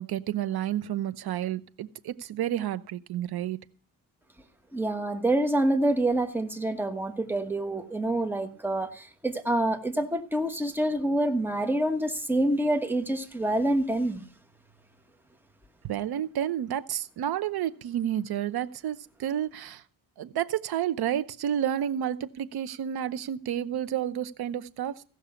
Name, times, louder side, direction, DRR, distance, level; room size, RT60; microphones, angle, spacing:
voice 1, 0.0-3.6 15.8-19.8 20.2-25.0, right 10 dB, 65° right, 0.9 m, -30 dB
voice 2, 4.7-14.2, right 1 dB, 5° right, 1.2 m, -27 dB
16.0 x 6.3 x 7.0 m
cardioid pair, 115°, 40 cm